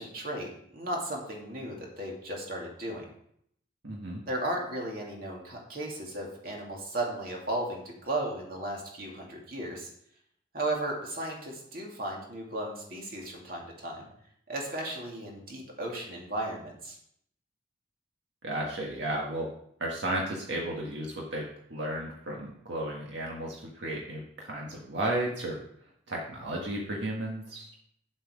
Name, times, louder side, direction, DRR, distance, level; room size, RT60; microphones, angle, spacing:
voice 1, 0.0-3.1 4.3-9.9 10.5-14.1 14.5-17.0, right 1 dB, 55° right, -1 dB, 2.7 m, -35 dB
voice 2, 3.8-4.2 18.4-19.5 19.8-25.6 26.1-27.7, right 1 dB, 75° right, -2 dB, 1.7 m, -34 dB
9.3 x 7.9 x 5.0 m, 0.69 s
head